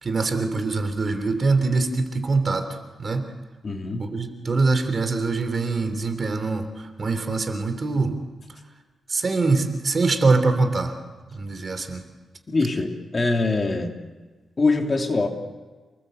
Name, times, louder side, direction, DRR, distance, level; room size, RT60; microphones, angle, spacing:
voice 1, 0.0-2.6 3.0-3.2 4.0-8.1 9.1-10.9 11.3-12.0, right 3 dB, 40° right, 7 dB, 3.1 m, -23 dB
voice 2, 3.6-4.1 12.5-14.0 14.6-15.3, left 3 dB, 35° left, 2 dB, 3.1 m, -23 dB
29.0 x 20.0 x 8.1 m, 1.3 s
wide cardioid pair, 120°, 0 cm